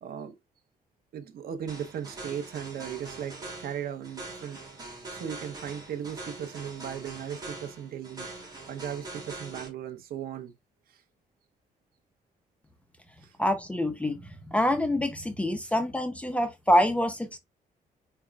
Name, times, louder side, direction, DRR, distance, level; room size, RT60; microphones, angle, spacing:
voice 1, 0.0-0.4 1.1-4.6 5.1-8.3 8.7-10.5 10.9-11.0 13.2-13.3 15.6-15.7, right 9 dB, 85° right, 0.9 m, -37 dB
sound 1, 1.7-9.7, right 2 dB, 25° right, 2.8 m, -43 dB
voice 2, 13.4-14.2 14.5-17.4, left 1 dB, 10° left, 0.7 m, -26 dB
4.9 x 4.5 x 2.4 m
cardioid pair, 130°, 15 cm